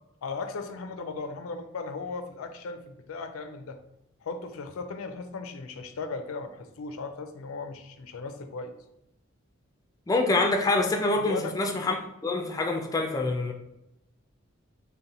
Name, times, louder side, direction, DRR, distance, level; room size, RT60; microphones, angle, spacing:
voice 1, 0.2-3.8 4.2-8.7 11.2-11.6, left 4 dB, 90° left, 8 dB, 0.4 m, -37 dB
voice 2, 10.1-12.0 12.2-13.5, left 2 dB, 15° left, 3 dB, 0.3 m, -25 dB
3.9 x 2.1 x 4.0 m, 0.87 s
head